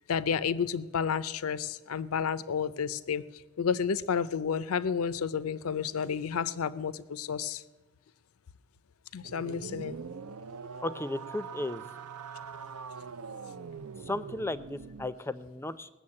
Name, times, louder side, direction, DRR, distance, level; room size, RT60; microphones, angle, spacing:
voice 1, 0.1-7.6 9.1-10.0, left 6 dB, 70° left, 0.5 m, -31 dB
sound 1, 9.2-15.1, right 5 dB, 80° right, 0.6 m, -43 dB
voice 2, 10.8-11.8 14.1-15.9, left 2 dB, 10° left, 0.5 m, -35 dB
19.0 x 7.1 x 8.6 m
head